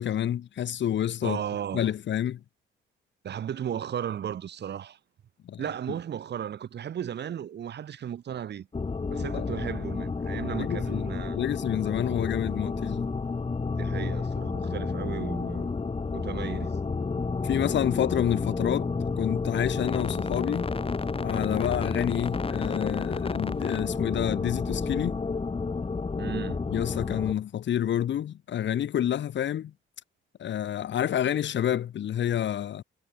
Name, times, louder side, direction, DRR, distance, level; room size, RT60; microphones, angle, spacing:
voice 1, 0.0-1.4 1.7-2.4 5.4-5.6 9.2-9.6 10.6-13.1 17.4-18.9 19.2-20.7 21.2-25.2 26.7-29.7 30.4-32.8, left 10 dB, 65° left, 3.4 m, -28 dB
voice 2, 1.2-1.9 3.2-5.0 5.6-8.7 9.1-11.4 13.8-15.7 16.1-16.8 26.2-26.6, right 9 dB, 60° right, 2.5 m, -35 dB
sound 1, 8.7-27.3, left 4 dB, 30° left, 3.5 m, -30 dB
cardioid pair, 90°, 20 cm